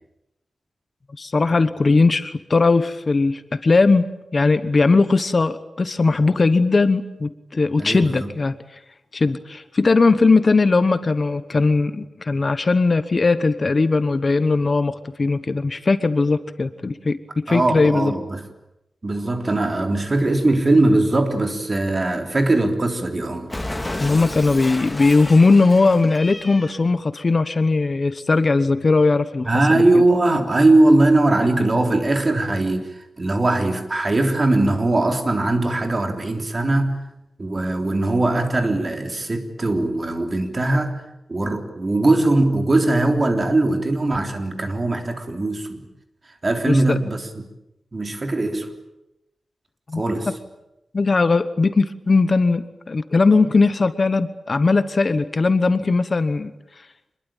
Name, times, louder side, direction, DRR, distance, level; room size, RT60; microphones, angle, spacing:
voice 1, 1.2-8.6 9.1-18.1 24.0-30.0 46.7-47.0 49.9-50.0 50.9-56.5, left 3 dB, 40° left, 12 dB, 1.1 m, -19 dB
voice 2, 7.8-8.3 17.5-18.4 19.0-23.5 29.5-32.9 33.2-37.0 37.4-41.0 41.3-45.8 46.4-47.2 47.9-48.7 50.0-50.3, right 2 dB, 30° right, 5 dB, 3.6 m, -20 dB
Cat, 23.5-26.8, left 1 dB, 15° left, 2.6 m, -32 dB
26.5 x 21.5 x 9.1 m, 0.88 s
wide cardioid pair, 135°, 0 cm